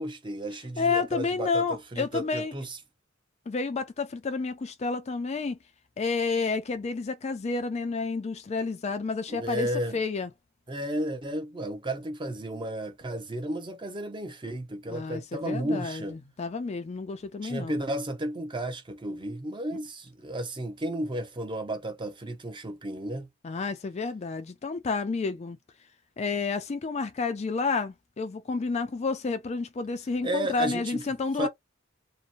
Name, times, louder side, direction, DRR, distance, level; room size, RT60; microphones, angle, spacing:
voice 1, 0.0-2.8 9.3-10.0 10.7-16.1 17.4-23.3 30.2-31.0 31.4-31.5, right 1 dB, 25° right, 0.6 m, -33 dB
voice 2, 0.8-2.5 3.5-5.6 6.0-10.3 14.9-17.8 23.4-25.6 26.2-31.5, left 4 dB, 30° left, 0.3 m, -30 dB
2.8 x 2.1 x 2.5 m
head